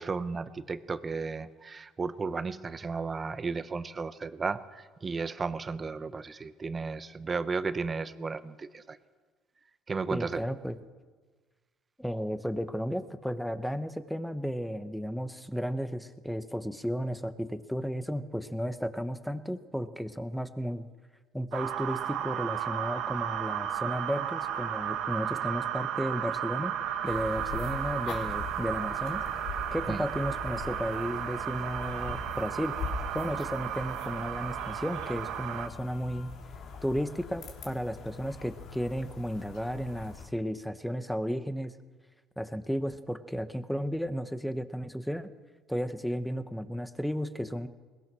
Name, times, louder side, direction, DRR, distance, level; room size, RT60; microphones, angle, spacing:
voice 1, 0.0-9.0 9.9-10.4 29.9-30.0, right 4 dB, 25° right, 13 dB, 1.0 m, -34 dB
voice 2, 10.1-10.8 12.0-20.9 21.3-26.7 27.0-29.2 29.7-32.8 33.1-36.3 36.8-41.7 42.4-45.3 45.7-47.7, equal, ahead, 11 dB, 1.2 m, -33 dB
sound 1, 21.5-35.7, right 10 dB, 70° right, 1.3 m, -34 dB
sound 2, 27.0-40.3, left 4 dB, 60° left, 3.1 m, -42 dB
21.5 x 20.5 x 6.2 m, 1.4 s
cardioid pair, 110°, 0 cm